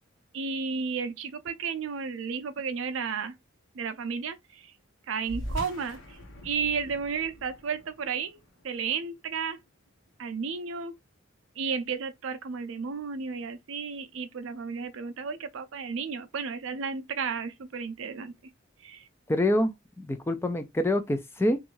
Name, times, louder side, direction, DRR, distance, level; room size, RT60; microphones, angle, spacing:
voice 1, 0.3-3.4 3.7-4.7 5.1-6.2 6.4-8.4 8.6-9.6 10.2-10.9 11.6-18.3 18.8-19.1, right 5 dB, 70° right, 0.4 m, -33 dB
sound 1, 5.2-10.1, equal, 75° left, 0.9 m, -42 dB
voice 2, 19.3-19.7 20.0-21.6, left 1 dB, 10° left, 0.3 m, -26 dB
2.6 x 2.3 x 3.0 m
head